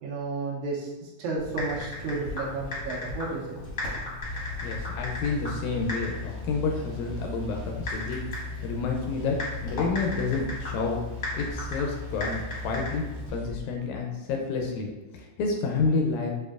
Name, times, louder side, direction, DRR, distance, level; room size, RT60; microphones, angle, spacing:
voice 1, 0.0-3.6, right 3 dB, 80° right, -3 dB, 2.2 m, -32 dB
Typing, 1.4-13.3, left 2 dB, 50° left, 1.0 m, -37 dB
sound 1, 4.2-13.7, left 2 dB, 55° right, 0.5 m, -38 dB
voice 2, 4.6-9.4 9.6-11.0 11.4-13.1 13.3-14.9 15.1-16.3, left 4 dB, 80° left, 1 dB, 1.8 m, -29 dB
6.5 x 2.6 x 2.4 m, 1.1 s
omnidirectional pair, 3.5 m